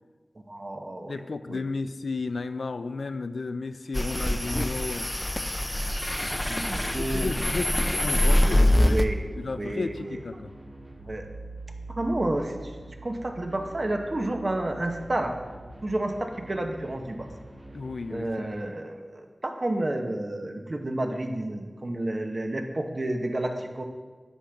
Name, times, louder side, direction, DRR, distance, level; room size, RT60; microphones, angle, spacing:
voice 1, 0.5-1.2 1.5-1.6 6.5-7.3 8.5-9.2 9.6-10.2 11.1-11.2 12.0-12.5 13.0-15.3 15.8-17.3 18.1-23.8, right 1 dB, 45° right, 4 dB, 0.8 m, -30 dB
voice 2, 1.1-5.1 6.8-9.0 9.3-10.5 17.7-18.7, left 3 dB, 85° left, 11 dB, 0.3 m, -33 dB
sound 1, 3.9-9.0, left 1 dB, 15° left, 0.4 m, -24 dB
sound 2, 6.3-18.3, right 2 dB, 70° right, 1.8 m, -44 dB
9.8 x 5.8 x 3.5 m, 1.4 s
wide cardioid pair, 65°, 0 cm